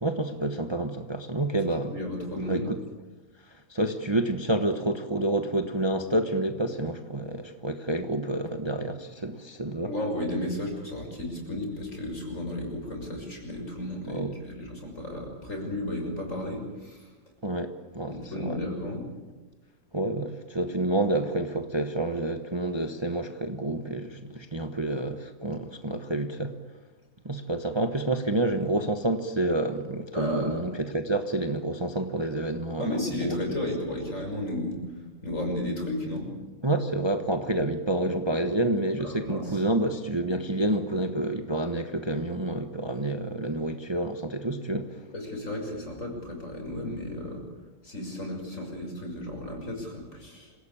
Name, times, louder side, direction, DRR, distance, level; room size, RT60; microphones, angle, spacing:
voice 1, 0.0-1.9 2.5-2.8 3.7-9.9 14.1-14.3 17.4-18.6 19.9-26.5 27.2-32.9 33.2-33.4 36.6-45.0, right 1 dB, 20° right, 6 dB, 1.2 m, -28 dB
voice 2, 1.9-2.7 9.8-17.1 18.1-19.0 30.1-30.6 32.8-34.8 35.2-36.3 39.0-39.6 45.1-47.4 47.8-50.5, left 1 dB, 60° left, 2 dB, 6.5 m, -33 dB
26.5 x 17.5 x 8.6 m, 1.2 s
omnidirectional pair, 1.5 m